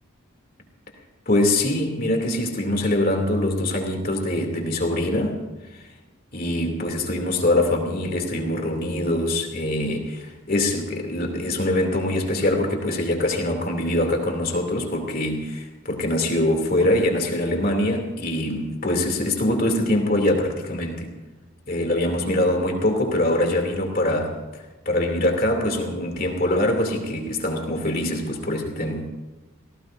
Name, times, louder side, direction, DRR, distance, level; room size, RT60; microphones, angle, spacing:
voice 1, 1.3-5.4 5.7-5.8 6.3-21.1 21.7-29.1, left 1 dB, 45° left, 2 dB, 2.8 m, -23 dB
29.0 x 18.0 x 2.6 m, 1.2 s
head